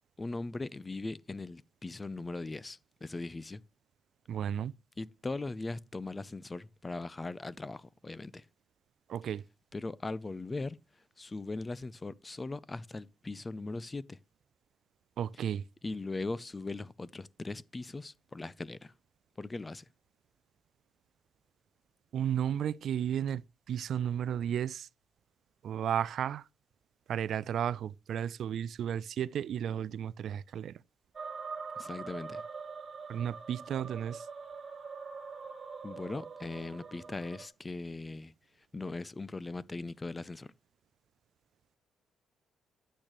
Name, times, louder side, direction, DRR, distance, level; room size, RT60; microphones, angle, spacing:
voice 1, 0.2-3.6 5.0-8.4 9.7-10.8 11.2-14.2 15.8-18.9 19.4-19.8 31.8-32.4 35.8-38.3 38.7-40.5, left 3 dB, 20° left, 0.5 m, -39 dB
voice 2, 4.3-4.7 9.1-9.4 15.2-15.6 22.1-24.9 25.6-26.4 27.1-30.8 33.1-34.3, right 9 dB, 65° right, 0.4 m, -33 dB
sound 1, 31.1-37.5, right 5 dB, 40° right, 1.6 m, -44 dB
10.0 x 8.7 x 3.0 m
cardioid pair, 90°, 0 cm